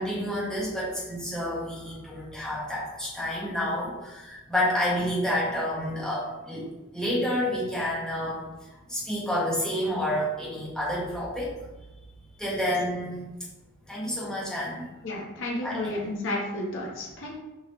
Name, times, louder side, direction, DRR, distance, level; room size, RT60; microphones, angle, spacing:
voice 1, 0.0-11.6 12.4-13.3 13.9-14.9 15.6-15.9, equal, 5° left, -6 dB, 1.9 m, -29 dB
voice 2, 15.0-17.3, left 2 dB, 60° left, -3 dB, 1.6 m, -32 dB
6.9 x 4.7 x 3.3 m, 1.1 s
head